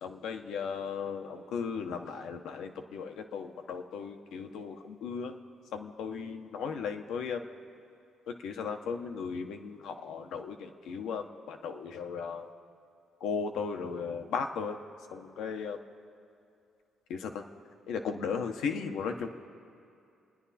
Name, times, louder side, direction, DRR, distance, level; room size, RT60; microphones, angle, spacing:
voice 1, 0.0-5.3 5.7-7.4 8.4-12.5 13.2-14.8 15.1-15.8 17.1-17.4 17.9-19.3, left 6 dB, 85° left, 5 dB, 1.1 m, -36 dB
30.0 x 10.0 x 4.2 m, 2.7 s
cardioid pair, 90°, 0 cm